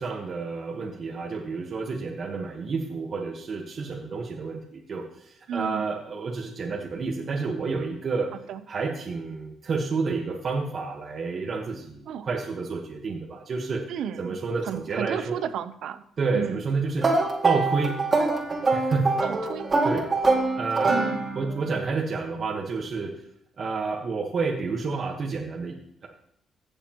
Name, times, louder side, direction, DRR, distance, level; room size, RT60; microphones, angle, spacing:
voice 1, 0.0-8.3 8.7-13.8 14.2-15.4 16.2-17.1 17.4-18.0 18.7-19.1 19.8-20.1 20.6-20.9 21.3-23.1 23.6-25.8, right 4 dB, 50° right, -1 dB, 1.3 m, -29 dB
voice 2, 5.5-5.9 8.5-8.6 12.1-12.3 13.9-16.0 16.3-16.6 19.2-19.7 20.9-21.2, right 8 dB, 75° right, 12 dB, 0.6 m, -33 dB
sound 1, 17.0-21.6, right 3 dB, 30° right, 2.1 m, -24 dB
16.0 x 6.9 x 3.0 m, 0.74 s
cardioid pair, 90°, 0 cm